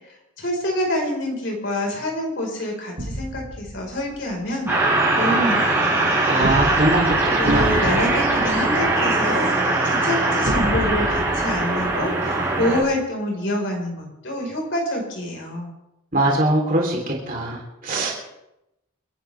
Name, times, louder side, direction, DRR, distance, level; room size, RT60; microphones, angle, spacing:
voice 1, 0.4-4.7 5.2-5.9 7.4-15.7, left 1 dB, 60° left, 0 dB, 4.9 m, -26 dB
sound 1, 3.0-4.4 6.4-9.4 10.4-12.6, equal, 60° right, 2.0 m, -30 dB
sound 2, 4.7-12.8, right 2 dB, 10° right, 5.8 m, -21 dB
voice 2, 6.3-8.0 16.1-18.3, right 1 dB, 40° right, -1 dB, 3.5 m, -22 dB
29.5 x 11.5 x 3.5 m, 0.89 s
head